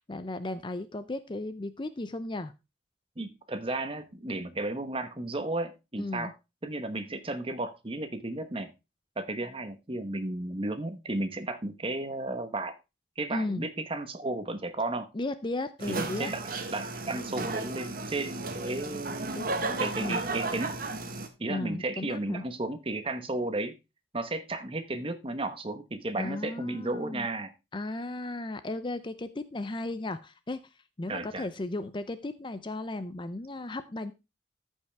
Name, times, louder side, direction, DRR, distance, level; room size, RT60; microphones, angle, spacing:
voice 1, 0.0-2.5 6.0-6.3 13.3-13.7 15.1-16.3 19.3-20.2 21.5-22.4 26.2-27.3 27.7-30.6 31.0-34.1, left 2 dB, 25° left, 12 dB, 0.5 m, -35 dB
voice 2, 3.2-6.3 6.6-8.7 9.2-12.7 13.2-15.1 15.9-16.4 16.7-19.5 19.8-20.7 21.4-23.7 24.1-27.5 31.1-31.5, right 2 dB, 30° right, 9 dB, 1.1 m, -34 dB
sound 1, 15.8-21.3, right 3 dB, 50° right, 1.3 m, -34 dB
14.0 x 5.5 x 3.4 m, 0.26 s
head